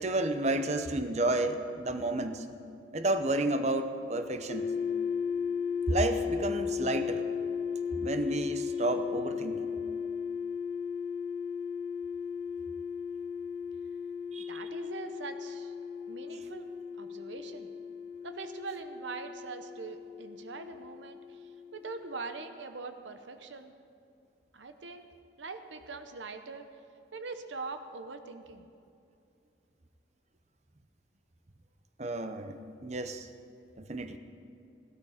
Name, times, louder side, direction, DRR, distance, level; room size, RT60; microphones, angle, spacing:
voice 1, 0.0-2.5 2.9-4.7 5.9-7.2 8.0-9.7 14.3-14.5 32.0-33.3 33.8-34.2, right 2 dB, 35° right, 9 dB, 0.7 m, -31 dB
sound 1, 4.5-22.4, left 6 dB, 50° left, 1.4 m, -36 dB
voice 2, 14.5-15.7 16.1-17.7 18.2-23.7 24.5-25.1 25.4-26.7 27.1-28.7, right 4 dB, 85° right, 8 dB, 0.8 m, -42 dB
16.5 x 12.5 x 5.0 m, 2.5 s
head